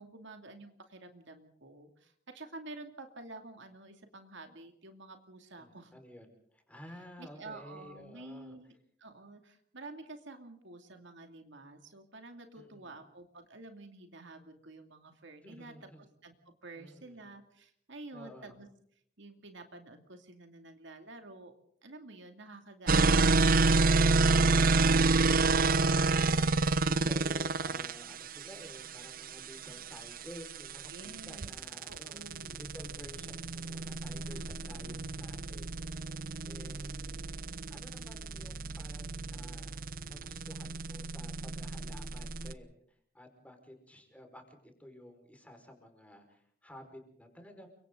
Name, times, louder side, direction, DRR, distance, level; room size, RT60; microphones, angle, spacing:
voice 1, 0.0-5.9 7.2-8.7 9.0-15.7 16.2-18.7 19.2-21.5 21.8-24.6 30.9-31.5 31.9-32.6 34.3-35.1, right 2 dB, 60° right, 5 dB, 2.6 m, -50 dB
voice 2, 5.6-8.6 12.6-12.9 15.4-16.0 16.7-17.2 18.1-18.5 24.1-32.2 32.5-36.9 37.2-37.4 37.7-47.7, equal, 5° left, 4 dB, 4.9 m, -52 dB
sound 1, 22.9-42.5, right 3 dB, 45° right, 0.9 m, -29 dB
30.0 x 24.5 x 3.9 m, 0.65 s
head